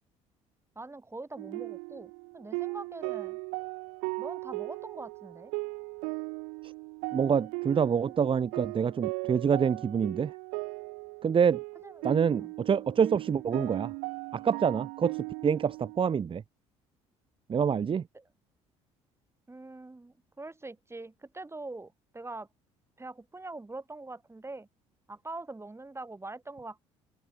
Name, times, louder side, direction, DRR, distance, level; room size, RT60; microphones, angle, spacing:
voice 1, 0.8-3.4 4.2-5.5 11.8-12.5 18.1-18.2 19.5-22.5 23.0-24.7 25.1-26.8, right 2 dB, 15° right, 7.2 m, -43 dB
sound 1, 1.4-16.0, right 37 dB, 80° right, 0.8 m, -38 dB
voice 2, 7.1-10.3 11.2-11.6 12.0-13.9 14.3-16.4 17.5-18.1, right 7 dB, 35° right, 0.8 m, -26 dB
hypercardioid pair, 65°, 15 cm